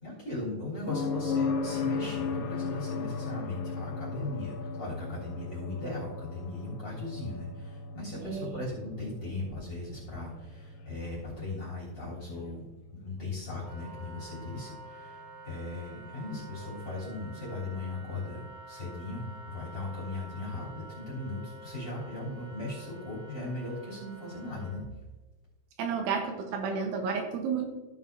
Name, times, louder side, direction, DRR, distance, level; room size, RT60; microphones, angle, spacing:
voice 1, 0.0-12.6 13.0-24.8, left 2 dB, 25° left, -5 dB, 3.4 m, -38 dB
sound 1, 0.9-14.7 17.0-17.1, left 4 dB, 75° left, 2.2 m, -37 dB
voice 2, 8.2-8.6 25.8-27.7, right 6 dB, 80° right, 3 dB, 3.3 m, -31 dB
Wind instrument woodwind instrument, 13.5-24.8, right 2 dB, 60° right, 2.8 m, -48 dB
15.0 x 7.2 x 2.7 m, 1.2 s
omnidirectional pair, 5.7 m